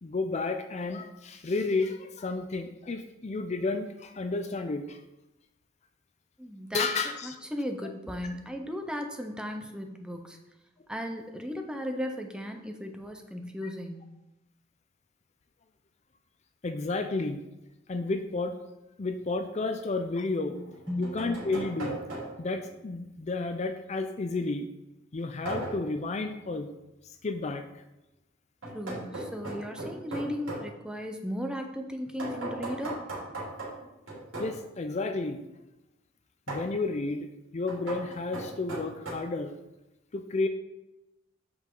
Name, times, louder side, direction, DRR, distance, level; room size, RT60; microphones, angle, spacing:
voice 1, 0.0-5.0 6.7-7.4 16.6-17.4 17.9-18.6 19.0-20.6 21.0-22.0 22.4-24.6 25.1-26.7 27.0-27.6 34.4-35.4 36.5-37.3 37.5-39.5 40.1-40.5, left 3 dB, 35° left, 7 dB, 0.4 m, -31 dB
voice 2, 6.4-6.9 7.2-10.4 10.9-14.1 20.5-20.6 20.9-21.2 28.7-33.0, equal, 5° right, 4 dB, 0.7 m, -36 dB
sound 1, 19.2-19.3 20.6-22.6 25.5-25.9 28.6-30.7 32.2-34.6 36.5-36.7 37.7-39.1, right 2 dB, 85° right, 2.8 m, -38 dB
7.9 x 5.4 x 3.8 m, 0.96 s
head